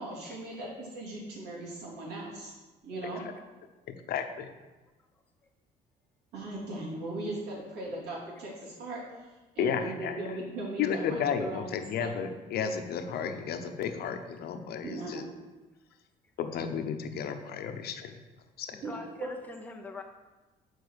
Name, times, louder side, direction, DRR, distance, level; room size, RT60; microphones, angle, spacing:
voice 1, 0.0-2.5 2.8-3.2 6.3-9.0 9.5-12.1 14.8-15.2 18.8-19.0, right 2 dB, 75° right, -4 dB, 2.7 m, -38 dB
voice 2, 3.9-4.5 9.6-10.2 10.8-15.2 16.4-18.1 18.6-18.8, left 7 dB, 65° left, 7 dB, 0.8 m, -33 dB
voice 3, 18.7-20.0, left 3 dB, 10° left, 3 dB, 0.6 m, -44 dB
6.9 x 4.6 x 6.3 m, 1.2 s
cardioid pair, 110°, 17 cm